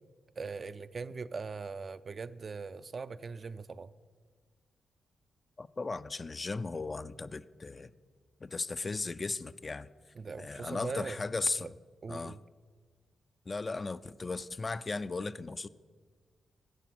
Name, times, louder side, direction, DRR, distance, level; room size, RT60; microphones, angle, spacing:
voice 1, 0.4-3.9 10.2-11.2 11.6-11.7 12.0-12.4, right 4 dB, 50° right, 0.4 m, -40 dB
voice 2, 5.6-7.9 8.4-9.9 10.4-11.7 12.1-12.4 13.5-15.7, left 3 dB, 35° left, 0.4 m, -36 dB
13.0 x 8.3 x 6.1 m
cardioid pair, 65°, 0 cm